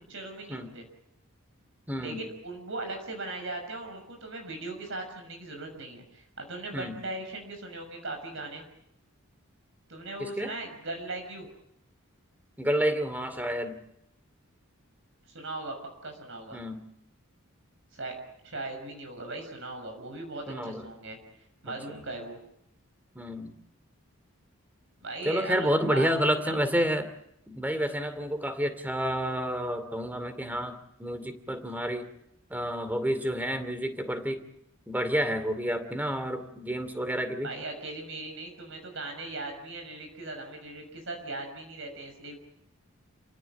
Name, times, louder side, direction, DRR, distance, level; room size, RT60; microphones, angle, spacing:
voice 1, 0.1-0.9 2.0-8.6 9.9-11.5 15.3-15.8 16.0-16.7 17.9-18.1 18.4-21.2 21.6-22.4 25.0-26.6 37.4-42.4, right 2 dB, 60° right, 4 dB, 6.3 m, -39 dB
voice 2, 1.9-2.2 6.7-7.0 10.2-10.5 12.6-13.8 16.5-16.8 20.5-20.8 21.7-21.8 23.1-23.6 25.2-27.1 27.5-30.7 31.0-32.1 32.5-34.4 34.9-37.5, equal, 10° right, 10 dB, 2.5 m, -29 dB
29.0 x 18.0 x 9.0 m, 0.77 s
head